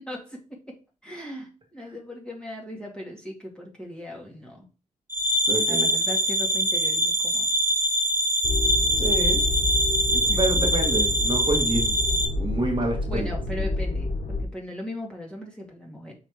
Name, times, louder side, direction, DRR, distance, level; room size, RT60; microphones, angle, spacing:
voice 1, 0.0-4.7 5.7-7.5 10.0-10.6 13.1-16.2, left 1 dB, 5° left, -1 dB, 2.0 m, -38 dB
sound 1, 5.1-12.3, right 1 dB, 15° right, 1.0 m, -23 dB
voice 2, 5.5-5.9 9.0-9.4 10.3-11.9 12.4-13.3, right 1 dB, 40° right, 2 dB, 1.3 m, -27 dB
sound 2, 8.4-14.4, left 3 dB, 55° left, 1.0 m, -28 dB
5.8 x 3.9 x 4.6 m, 0.33 s
wide cardioid pair, 160°, 13 cm